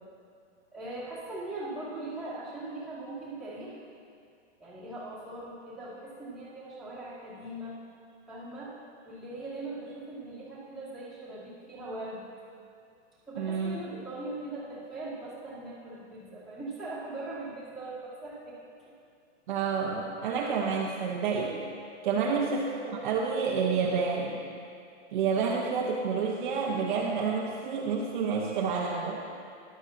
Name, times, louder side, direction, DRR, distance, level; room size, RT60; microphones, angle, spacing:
voice 1, 0.7-3.8 4.6-7.8 8.3-8.7 9.0-12.2 12.9-13.0 13.3-18.6 18.8-18.9 22.1-22.6, right 2 dB, ahead, -12 dB, 2.3 m, -40 dB
voice 2, 13.4-13.8 19.5-21.6 22.0-24.4 25.1-29.2, right 5 dB, 40° right, -2 dB, 1.1 m, -29 dB
14.5 x 11.5 x 2.8 m, 2.4 s
hypercardioid pair, 165°, 36 cm